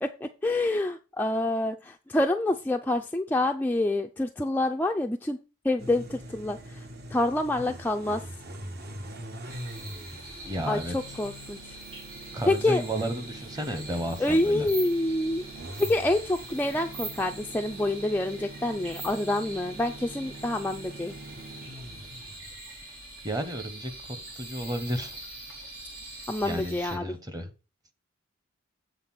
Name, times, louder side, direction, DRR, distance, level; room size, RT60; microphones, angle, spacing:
voice 1, 0.0-5.4 5.6-6.9 7.1-8.2 10.7-11.8 12.5-12.8 14.2-15.5 15.8-21.1 26.3-27.2, left 1 dB, 10° left, 3 dB, 0.3 m, -27 dB
sound 1, 5.8-22.6, right 1 dB, 50° right, 1.1 m, -43 dB
sound 2, 9.5-27.0, right 2 dB, 80° right, 3.4 m, -43 dB
voice 2, 10.4-11.0 12.3-14.6 23.2-23.9 24.4-25.2 26.4-27.5, right 1 dB, 20° right, 8 dB, 1.0 m, -32 dB
8.1 x 3.8 x 5.8 m, 0.31 s
head